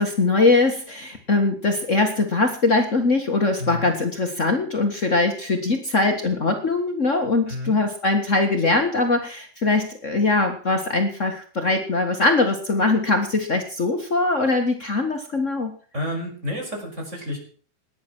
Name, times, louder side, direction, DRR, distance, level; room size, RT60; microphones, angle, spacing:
voice 1, 0.0-15.7, left 3 dB, 80° left, 4 dB, 0.6 m, -21 dB
voice 2, 3.6-3.9 7.5-7.8 15.9-17.4, left 1 dB, 15° right, 1 dB, 6.0 m, -30 dB
19.0 x 10.5 x 6.2 m, 0.43 s
omnidirectional pair, 4.4 m